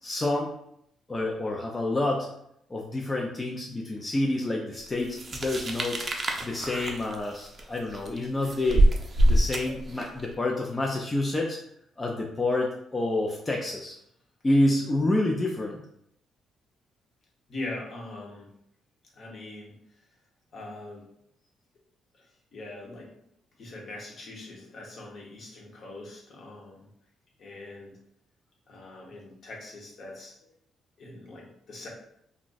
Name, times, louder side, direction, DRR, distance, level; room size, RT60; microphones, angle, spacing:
voice 1, 0.0-0.5 1.1-2.3 2.7-6.0 6.4-8.8 9.2-11.6 12.0-14.0 14.4-15.8, left 2 dB, 20° left, 0 dB, 0.4 m, -28 dB
sound 1, 5.1-10.3, right 1 dB, 35° right, 0.5 m, -25 dB
voice 2, 17.5-18.5 19.1-19.8 20.5-21.1 22.2-22.3 22.5-23.1 23.6-26.9 27.4-27.9 28.7-30.4 31.0-31.9, left 2 dB, 55° left, -1 dB, 0.9 m, -42 dB
2.4 x 2.2 x 3.9 m, 0.74 s
cardioid pair, 90°, 0 cm